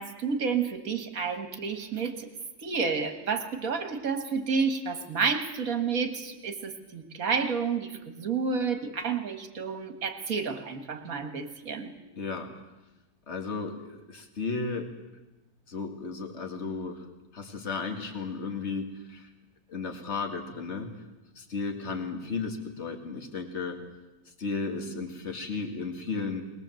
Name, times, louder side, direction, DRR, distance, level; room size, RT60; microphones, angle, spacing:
voice 1, 0.0-2.3 2.6-11.9, right 5 dB, 55° right, 7 dB, 2.0 m, -30 dB
voice 2, 12.2-12.5 13.3-14.9 15.7-17.1 17.3-19.3 19.7-20.9 21.4-23.8 24.4-26.4, left 4 dB, 40° left, 5 dB, 2.3 m, -34 dB
21.5 x 20.0 x 7.7 m, 1.1 s
omnidirectional pair, 1.8 m